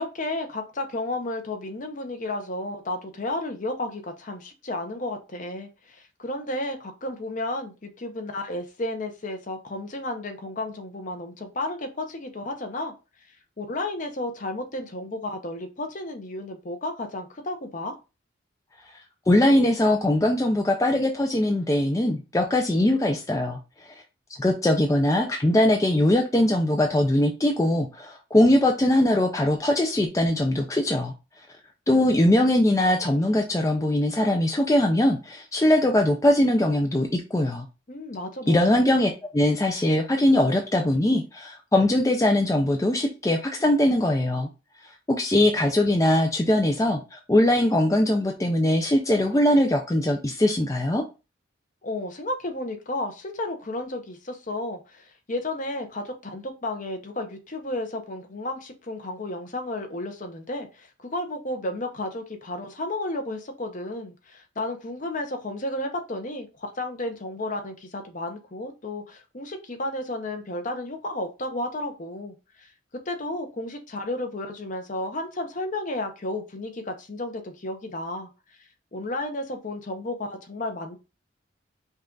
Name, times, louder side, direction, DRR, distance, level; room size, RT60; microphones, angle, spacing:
voice 1, 0.0-12.9 13.6-17.9 37.9-38.8 51.8-78.3 78.9-81.0, left 1 dB, 40° left, 5 dB, 0.8 m, -32 dB
voice 2, 19.3-23.9 24.4-31.1 31.9-37.7 38.5-44.5 45.1-51.0, left 1 dB, 15° left, 2 dB, 0.5 m, -21 dB
5.4 x 2.4 x 3.8 m, 0.29 s
head